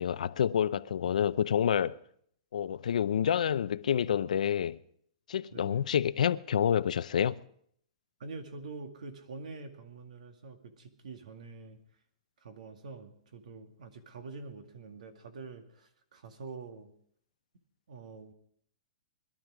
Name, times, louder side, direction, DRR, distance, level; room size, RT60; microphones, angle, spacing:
voice 1, 0.0-1.9 2.5-4.8 5.3-7.4, left 9 dB, 80° left, 0.6 m, -28 dB
voice 2, 5.5-5.9 8.2-11.8 12.4-16.9 17.9-18.3, right 4 dB, 80° right, 2.3 m, -46 dB
21.5 x 12.0 x 5.0 m
hypercardioid pair, 155°, 4 cm